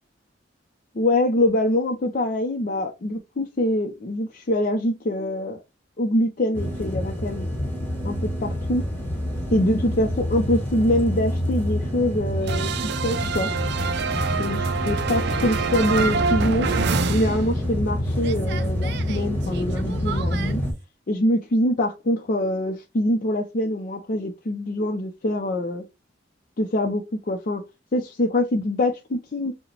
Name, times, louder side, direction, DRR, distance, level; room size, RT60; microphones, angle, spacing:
voice 1, 0.9-5.6 6.0-7.5 8.0-8.8 9.5-12.7 13.0-13.5 14.4-16.7 17.1-20.6 21.1-25.8 26.6-27.6 27.9-29.5, left 1 dB, 45° left, 0.5 m, -24 dB
sound 1, 6.5-20.7, equal, 10° left, 1.1 m, -27 dB
sound 2, 12.5-17.9 18.2-20.5, right 5 dB, 60° right, 0.4 m, -27 dB
4.8 x 2.1 x 3.2 m
head